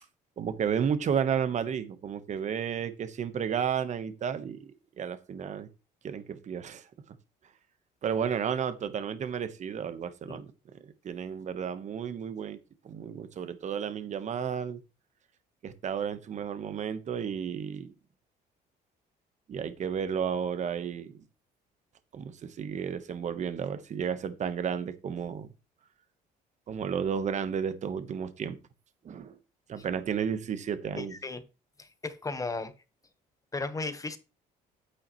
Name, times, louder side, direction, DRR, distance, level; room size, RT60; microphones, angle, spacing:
voice 1, 0.4-5.7 6.0-6.8 8.0-10.5 11.0-12.6 12.8-14.8 15.6-17.9 19.5-21.2 22.1-25.5 26.7-28.6 29.0-29.4 29.7-31.1, right 7 dB, 45° right, 1.1 m, -32 dB
voice 2, 30.9-31.4 31.8-32.7 33.5-34.2, left 3 dB, 20° left, 1.2 m, -35 dB
9.8 x 8.7 x 3.1 m
cardioid pair, 110°, 17 cm